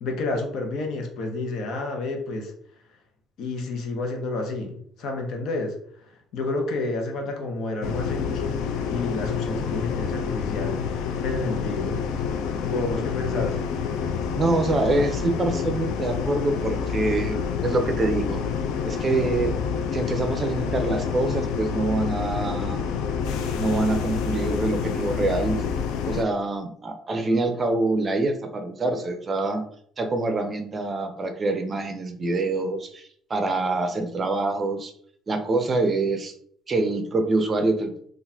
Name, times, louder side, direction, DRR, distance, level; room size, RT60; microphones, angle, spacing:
voice 1, 0.0-2.5 3.4-5.7 6.3-8.5 8.9-12.0 12.6-13.6, left 2 dB, 70° left, 3 dB, 0.8 m, -30 dB
sound 1, 7.8-26.2, left 6 dB, 85° left, 0.4 m, -28 dB
voice 2, 14.4-17.4 17.6-18.4 18.9-19.5 19.9-22.8 23.5-25.6 26.1-29.6 30.0-34.9 35.3-36.3 36.7-37.9, right 2 dB, 35° right, 6 dB, 0.5 m, -25 dB
3.8 x 2.4 x 2.7 m, 0.64 s
cardioid pair, 105°, 0 cm